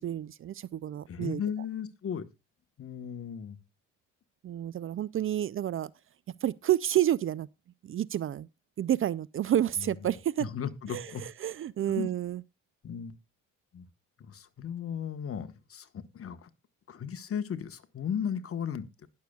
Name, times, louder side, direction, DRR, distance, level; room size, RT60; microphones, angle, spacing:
voice 1, 0.0-1.4 4.4-5.9 6.3-7.5 7.8-8.5 8.8-10.5 10.9-12.4, right 11 dB, 45° right, 0.4 m, -30 dB
voice 2, 1.1-2.2 2.8-3.6 9.8-9.9 10.4-11.2 11.8-12.1 12.8-13.1 13.7-13.9 14.2-16.5 16.9-19.1, left 8 dB, 50° left, 1.2 m, -36 dB
20.0 x 6.6 x 2.3 m
cardioid pair, 90°, 30 cm